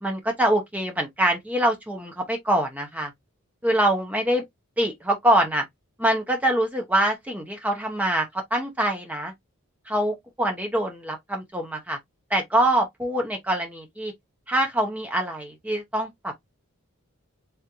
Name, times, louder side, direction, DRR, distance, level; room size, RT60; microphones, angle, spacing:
voice 1, 0.0-3.1 3.6-4.4 4.8-5.6 6.0-8.3 8.5-9.3 9.9-12.0 12.3-14.1 14.5-16.1, right 1 dB, 5° right, 0.6 m, -24 dB
3.4 x 2.5 x 2.8 m
head